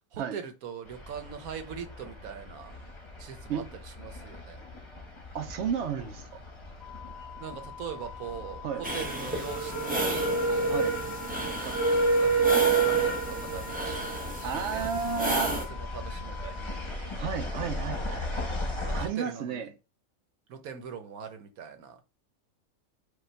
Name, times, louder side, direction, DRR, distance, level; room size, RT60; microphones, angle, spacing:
voice 1, 0.1-2.8 3.2-4.6 7.4-10.9 11.6-16.8 18.9-19.7 20.5-22.0, right 7 dB, 90° right, 1.3 m, -41 dB
sound 1, 0.9-19.1, right 3 dB, 25° left, 0.8 m, -31 dB
voice 2, 5.3-6.4 8.6-8.8 10.7-10.9 14.4-15.6 17.2-18.2 18.9-19.7, right 7 dB, 65° right, 0.8 m, -32 dB
sound 2, 6.8-16.9, left 9 dB, 70° left, 0.3 m, -46 dB
sound 3, 8.8-15.7, right 1 dB, 10° right, 0.5 m, -34 dB
5.0 x 2.3 x 4.4 m
omnidirectional pair, 1.5 m